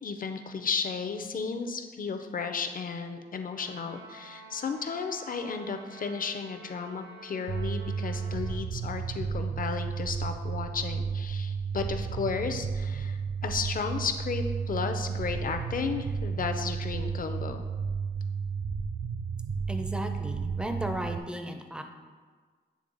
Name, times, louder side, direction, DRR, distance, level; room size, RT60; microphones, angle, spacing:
voice 1, 0.0-17.6, left 5 dB, 50° left, 7 dB, 0.5 m, -34 dB
Trumpet, 3.6-8.6, right 3 dB, 85° right, 0.7 m, -49 dB
sound 1, 7.5-21.2, right 5 dB, 60° right, 0.4 m, -33 dB
voice 2, 19.7-21.8, right 1 dB, 5° right, 6 dB, 0.5 m, -35 dB
8.4 x 3.3 x 3.8 m, 1.5 s
wide cardioid pair, 100°, 18 cm